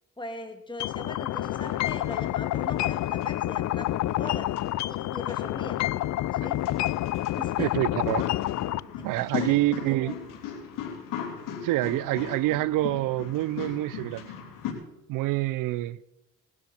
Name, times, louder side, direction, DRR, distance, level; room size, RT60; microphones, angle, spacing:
voice 1, 0.2-4.5 4.9-5.8 6.3-6.6 7.2-7.8 9.0-9.1 9.4-10.1, left 2 dB, 15° left, 2.6 m, -40 dB
sound 1, 0.8-8.8, left 15 dB, 60° left, 0.5 m, -28 dB
sound 2, 1.3-14.7, left 8 dB, 90° left, 3.1 m, -39 dB
voice 2, 7.6-8.2 9.0-10.1 11.6-14.3 15.1-16.0, right 17 dB, 85° right, 0.5 m, -26 dB
19.0 x 12.0 x 4.3 m
cardioid pair, 85°, 32 cm